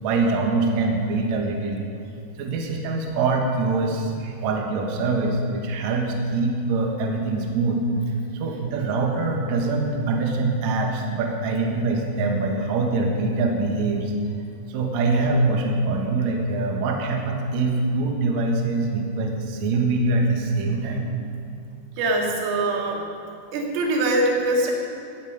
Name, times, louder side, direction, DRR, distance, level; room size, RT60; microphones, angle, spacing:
voice 1, 0.0-1.8 2.4-4.1 4.4-7.8 8.3-14.1 14.7-21.1, right 3 dB, 60° right, 1 dB, 2.0 m, -24 dB
voice 2, 22.0-23.0 23.5-24.7, right 2 dB, 85° right, 0 dB, 4.6 m, -23 dB
17.5 x 15.0 x 5.1 m, 2.5 s
omnidirectional pair, 5.6 m